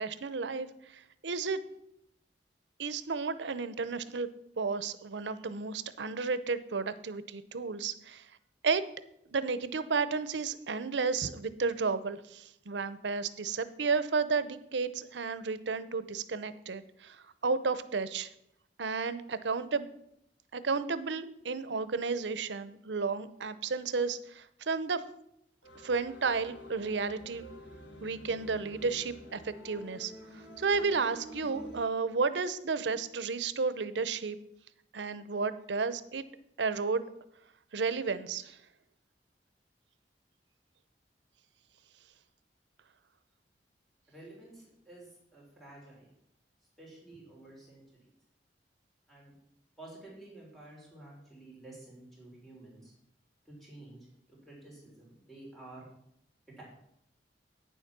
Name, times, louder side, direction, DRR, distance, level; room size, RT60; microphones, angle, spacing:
voice 1, 0.0-1.6 2.8-4.3 4.6-8.3 8.6-8.8 9.3-18.3 18.8-19.9 20.5-25.0 25.8-27.4 28.0-34.4 34.9-36.2 36.6-37.0 37.7-38.6, right 4 dB, 90° right, 14 dB, 0.7 m, -32 dB
sound 1, 25.6-31.8, right 1 dB, 90° left, 1.8 m, -49 dB
voice 2, 44.1-46.1 46.8-48.1 49.1-49.4 49.8-52.9 53.5-55.9 56.5-56.6, right 2 dB, ahead, -4 dB, 3.6 m, -51 dB
9.4 x 7.3 x 6.0 m, 0.76 s
head